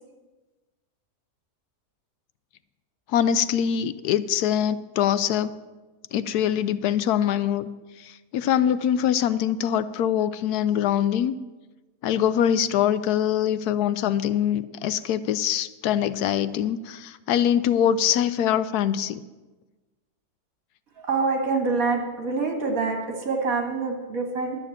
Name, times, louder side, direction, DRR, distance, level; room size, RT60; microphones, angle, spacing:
voice 1, 3.1-5.5 6.1-7.7 8.0-11.3 12.0-19.2, left 9 dB, 75° left, 14 dB, 1.1 m, -23 dB
voice 2, 21.0-24.6, right 4 dB, 60° right, 3 dB, 2.2 m, -26 dB
11.5 x 6.6 x 8.6 m, 1.2 s
omnidirectional pair, 1.7 m